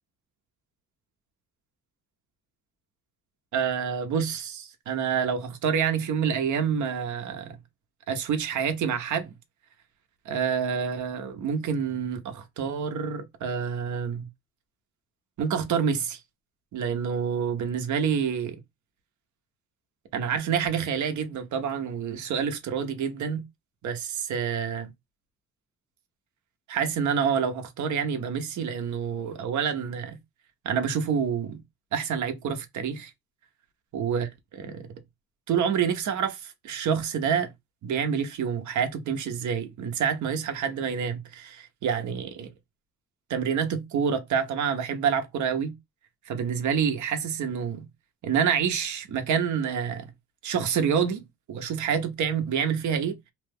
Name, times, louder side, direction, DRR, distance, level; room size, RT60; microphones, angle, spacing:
voice 1, 3.5-7.6 8.1-9.3 10.3-14.3 15.4-16.2 16.7-18.6 20.1-23.4 23.8-24.9 26.7-30.2 30.6-31.6 31.9-33.1 33.9-34.9 35.5-37.5 37.8-41.5 41.8-42.5 43.3-45.7 46.3-47.9 48.2-50.1 50.4-53.3, right 7 dB, 70° right, 0.8 m, -27 dB
2.9 x 2.2 x 3.3 m
cardioid pair, 90°, 30 cm